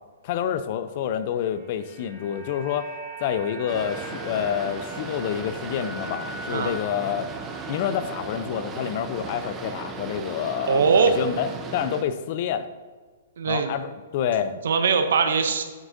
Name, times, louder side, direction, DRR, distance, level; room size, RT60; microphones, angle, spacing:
voice 1, 0.2-2.9 3.2-7.3 7.7-12.7 13.5-14.5, left 9 dB, 45° left, 11 dB, 0.5 m, -28 dB
sound 1, 1.3-9.6 9.9-10.0, right 2 dB, 35° right, 1.3 m, -42 dB
Boat Water vehicle, 3.7-12.0, right 4 dB, 20° right, 0.7 m, -36 dB
voice 2, 10.6-11.2 13.4-13.8 14.6-15.6, right 5 dB, 75° right, 7 dB, 0.6 m, -21 dB
9.1 x 6.0 x 2.7 m, 1.4 s
hypercardioid pair, 140°, 0 cm